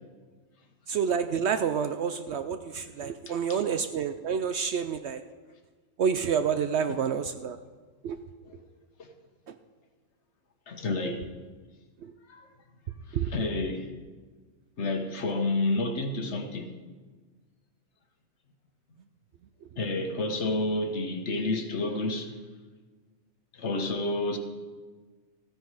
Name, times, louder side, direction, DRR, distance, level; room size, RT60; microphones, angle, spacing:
voice 1, 0.9-5.2 6.0-7.6 8.0-8.2 8.5-8.6 9.5-9.6 12.0-12.1 13.1-13.3, right 7 dB, 65° right, 0.7 m, -28 dB
voice 2, 3.3-3.6 8.4-8.5 9.0-9.1 10.7-11.3 12.3-12.5 13.1-13.9 14.8-16.7 19.8-22.3 23.5-24.4, left 2 dB, 55° left, 1.3 m, -30 dB
14.5 x 9.9 x 4.8 m
omnidirectional pair, 1.4 m